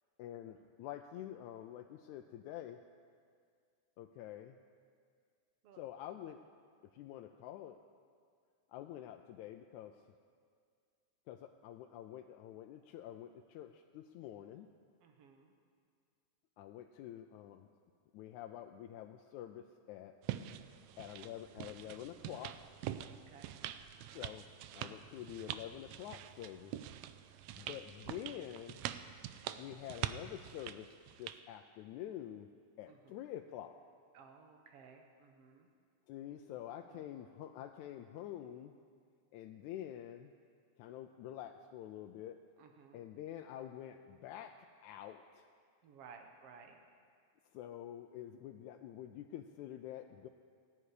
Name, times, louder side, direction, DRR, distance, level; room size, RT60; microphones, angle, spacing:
voice 1, 0.2-2.8 4.0-4.6 5.8-6.4 6.9-7.8 8.7-10.0 11.3-14.7 16.6-17.7 18.1-20.1 21.0-22.6 24.1-24.5 24.7-26.7 27.6-28.8 29.6-30.9 31.2-32.5 32.8-33.8 36.1-38.7 39.3-40.3 40.8-42.4 42.9-44.5 44.8-45.5 47.5-50.3, left 11 dB, 85° left, 5 dB, 2.0 m, -47 dB
voice 2, 15.0-15.5 23.0-23.6 23.9-24.3 32.9-33.2 34.1-35.7 36.9-37.0 42.6-43.0 45.8-46.8, right 6 dB, 60° right, 4 dB, 2.1 m, -58 dB
sound 1, 20.2-31.4, right 12 dB, 80° right, 1.6 m, -45 dB
27.5 x 10.0 x 4.9 m, 2.1 s
omnidirectional pair, 3.4 m